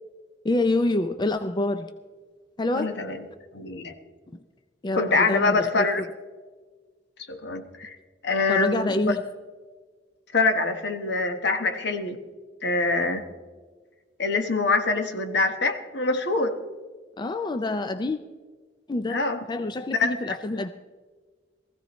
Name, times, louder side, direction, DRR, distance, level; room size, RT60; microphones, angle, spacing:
voice 1, 0.4-1.9 2.6-2.9 4.8-5.9 8.5-9.2 17.2-18.2 18.9-20.7, left 2 dB, 25° left, 9 dB, 0.4 m, -27 dB
voice 2, 2.7-3.2 3.5-3.9 4.9-6.0 7.3-8.0 8.2-8.9 10.3-12.2 12.6-13.2 14.2-16.6 19.1-19.4 19.9-20.4, left 3 dB, 70° left, 7 dB, 1.3 m, -25 dB
19.5 x 15.0 x 3.1 m, 1.4 s
head